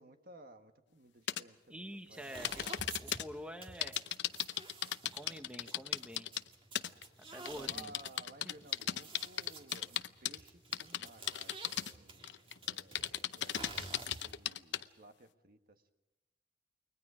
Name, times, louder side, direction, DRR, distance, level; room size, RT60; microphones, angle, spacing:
voice 1, 0.0-2.4 7.5-15.9, right 2 dB, 55° right, 6 dB, 1.6 m, -57 dB
sound 1, 1.3-1.4 2.4-3.2 3.8-6.5 6.8-7.0 7.5-10.4 10.7-11.9 12.2-14.8, left 11 dB, 90° left, 0.7 m, -36 dB
voice 2, 1.7-4.0 5.1-6.3 7.3-7.9 8.4-8.5, equal, 5° right, 6 dB, 1.1 m, -47 dB
sound 2, 2.1-14.5, right 3 dB, 30° right, 2.3 m, -51 dB
29.5 x 22.5 x 5.0 m, 1.0 s
head